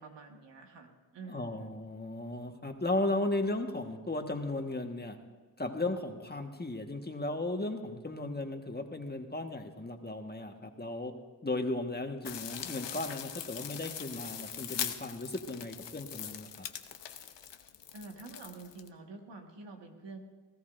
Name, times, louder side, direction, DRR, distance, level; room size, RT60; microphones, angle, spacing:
voice 1, 0.0-1.7 17.9-20.2, right 3 dB, 80° right, 2 dB, 1.8 m, -48 dB
voice 2, 1.3-5.2 5.6-11.1 11.4-16.7, left 2 dB, 25° left, 4 dB, 1.5 m, -35 dB
sound 1, 12.2-18.9, left 9 dB, 80° left, 0.9 m, -41 dB
19.5 x 14.0 x 2.6 m, 1.4 s
cardioid pair, 45°, 42 cm